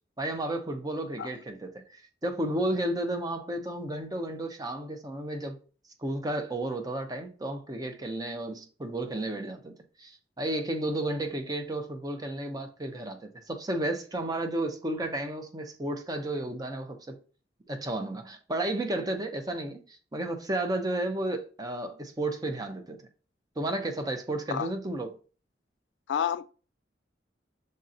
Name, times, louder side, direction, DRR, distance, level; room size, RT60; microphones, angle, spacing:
voice 1, 0.2-5.6 6.0-17.2 17.7-23.0 23.6-25.2, right 1 dB, 20° right, 0.7 m, -32 dB
voice 2, 26.1-26.4, left 8 dB, 75° left, 0.3 m, -29 dB
6.4 x 2.8 x 2.5 m
head